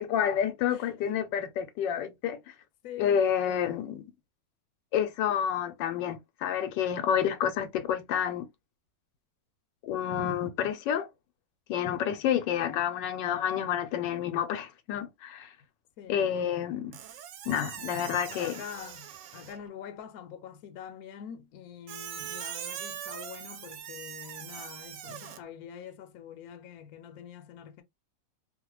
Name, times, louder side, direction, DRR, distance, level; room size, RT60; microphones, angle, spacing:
voice 1, 0.0-2.4 3.0-4.0 4.9-8.5 9.8-11.1 11.7-15.5 16.1-17.0 17.5-18.5, left 9 dB, 85° left, 1.3 m, -29 dB
voice 2, 2.8-3.6 16.0-16.5 18.3-27.8, left 8 dB, 65° left, 1.0 m, -45 dB
Squeak, 16.9-19.7 21.9-25.4, right 9 dB, 80° right, 1.2 m, -41 dB
3.0 x 2.1 x 3.0 m
omnidirectional pair, 1.9 m